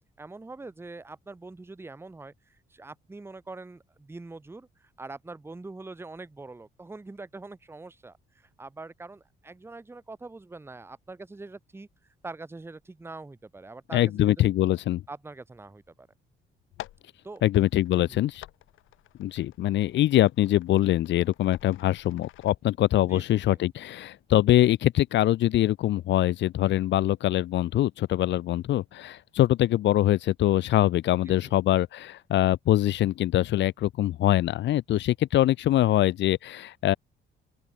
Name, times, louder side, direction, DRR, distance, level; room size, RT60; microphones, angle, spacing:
voice 1, 0.2-2.3 2.7-11.9 12.2-14.3 15.1-16.1 17.2-17.4 17.9-18.2 23.1-23.6 31.3-31.5, right 3 dB, 10° right, 0.8 m, -43 dB
voice 2, 13.9-15.0 17.4-18.4 19.2-36.9, left 13 dB, 65° left, 0.5 m, -23 dB
sound 1, 16.6-22.5, left 15 dB, 85° left, 0.9 m, -49 dB
open air
cardioid pair, 90°, 20 cm